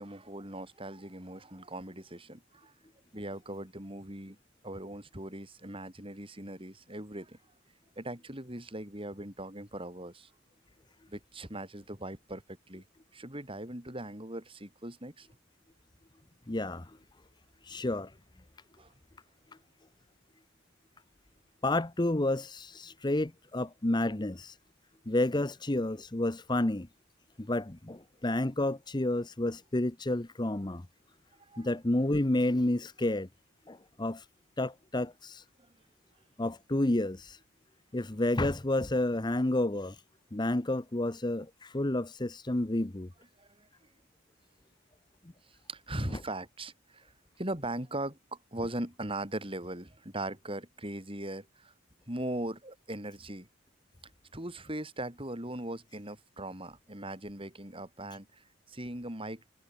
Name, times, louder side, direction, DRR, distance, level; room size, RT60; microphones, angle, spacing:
voice 1, 0.0-2.7 3.1-4.4 4.6-7.4 8.0-10.3 11.1-12.8 13.1-15.3 18.8-18.9 31.4-31.7 35.6-35.7 43.4-43.9 45.4-47.1 47.4-51.7 52.1-53.5 54.3-59.4, right 1 dB, 25° right, 6.0 m, -40 dB
voice 2, 16.5-16.9 17.6-18.1 21.6-24.6 25.1-26.9 27.4-30.9 31.6-33.3 33.7-34.2 34.6-35.4 36.4-37.4 37.9-40.0 40.3-43.1, left 1 dB, 20° left, 0.8 m, -30 dB
head